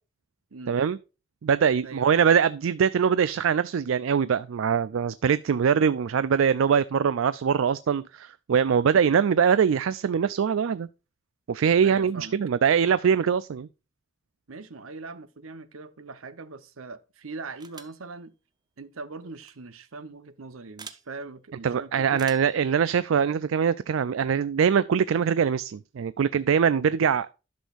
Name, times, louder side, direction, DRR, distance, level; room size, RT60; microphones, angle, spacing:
voice 1, 0.7-1.0 1.4-10.9 11.5-13.7 21.6-27.3, right 7 dB, 70° right, 0.4 m, -23 dB
voice 2, 11.8-12.4 14.5-18.3 18.8-22.2, right 3 dB, 90° right, 0.9 m, -41 dB
sound 1, 17.6-18.0 19.3-19.5 20.8-21.0 22.1-22.6, right 5 dB, 20° right, 0.7 m, -45 dB
11.5 x 6.3 x 2.5 m
head